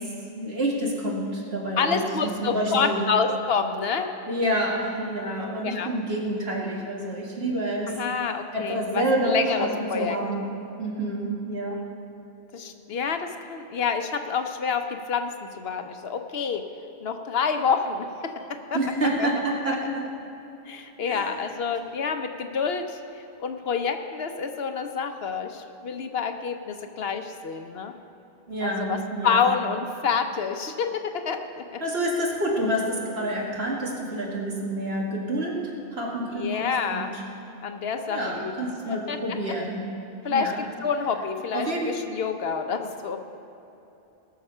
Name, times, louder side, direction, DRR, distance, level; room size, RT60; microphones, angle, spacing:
voice 1, 0.3-3.0 4.3-7.9 8.5-10.5 10.8-11.8 18.7-20.1 21.1-21.3 28.5-29.5 31.8-37.1 38.1-39.9 40.3-40.6 41.5-41.9, right 1 dB, 70° right, -2 dB, 2.3 m, -28 dB
voice 2, 1.8-4.1 5.6-5.9 7.9-10.2 12.5-16.7 17.0-18.8 19.2-19.3 19.6-19.9 20.7-23.0 23.4-27.9 28.6-31.8 36.3-37.1 37.6-39.4 40.2-43.2, left 6 dB, 70° left, 7 dB, 1.0 m, -28 dB
18.5 x 6.9 x 5.5 m, 2.9 s
omnidirectional pair, 1.1 m